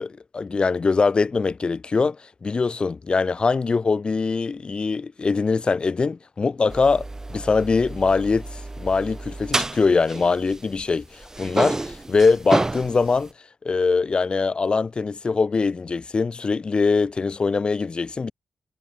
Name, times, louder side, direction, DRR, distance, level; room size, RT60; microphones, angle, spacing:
voice 1, 0.0-13.3 13.6-18.3, left 4 dB, 45° left, 2.0 m, -22 dB
sound 1, 6.7-10.9 11.2-13.3, right 2 dB, 25° right, 1.4 m, -29 dB
cardioid pair, 50°, 2 cm